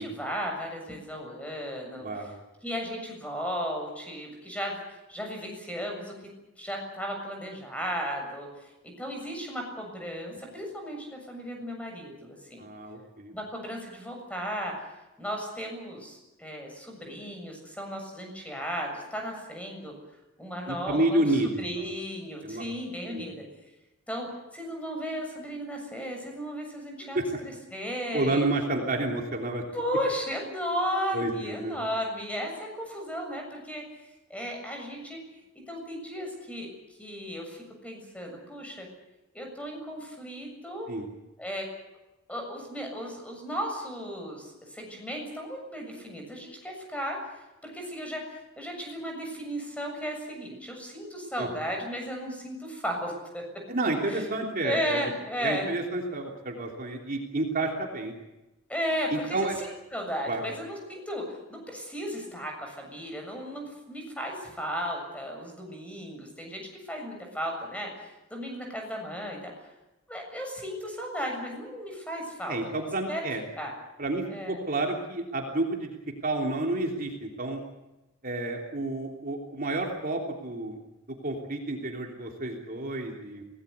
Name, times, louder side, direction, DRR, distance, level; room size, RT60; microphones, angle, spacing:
voice 1, 0.0-2.1 2.6-6.1 6.6-8.7 9.0-12.6 13.3-14.7 15.2-19.9 20.4-23.4 24.1-28.4 29.7-33.8 34.3-35.2 35.7-38.9 39.3-40.9 41.4-41.7 42.3-47.2 47.6-53.4 54.1-54.2 54.6-55.7 58.7-69.7 70.1-73.3 73.6-73.7 74.3-74.6, equal, 5° left, 2 dB, 7.2 m, -35 dB
voice 2, 2.0-2.4 12.6-13.3 20.7-21.6 22.4-22.6 23.1-23.3 27.1-27.2 28.1-29.6 31.1-31.8 40.9-41.1 51.4-51.5 53.7-55.0 55.4-58.1 59.1-59.6 60.3-60.4 72.5-73.4 74.0-75.9 76.2-77.6 78.2-80.8 81.1-83.4, right 2 dB, 45° right, 2 dB, 3.2 m, -30 dB
25.5 x 18.5 x 8.3 m, 1.0 s
head